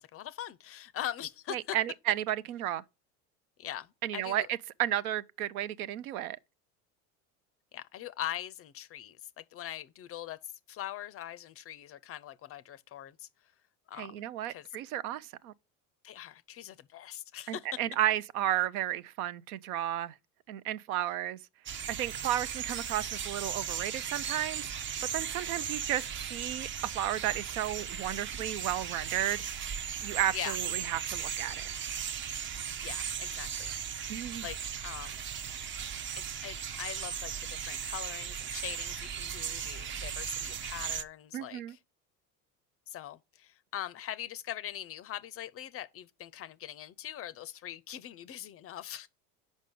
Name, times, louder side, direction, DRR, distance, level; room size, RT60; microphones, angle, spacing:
voice 1, 0.0-1.8 3.6-3.9 4.1-4.5 7.7-10.4 10.7-13.3 13.9-14.2 14.5-14.7 16.0-17.7 30.3-30.6 32.8-34.0 34.4-35.2 36.2-41.8 42.9-49.1, left 12 dB, 30° left, 0.5 m, -42 dB
voice 2, 1.5-2.8 4.0-4.5 4.8-6.4 14.0-15.5 17.5-20.1 20.5-21.4 21.9-24.7 25.1-29.4 30.0-31.6 34.1-34.5 41.3-41.7, right 12 dB, 70° right, 0.6 m, -33 dB
Birds chirping in the morning - Portland OR, 21.7-41.0, right 8 dB, 25° right, 0.5 m, -37 dB
6.2 x 5.2 x 5.3 m
hypercardioid pair, 75°, 45 cm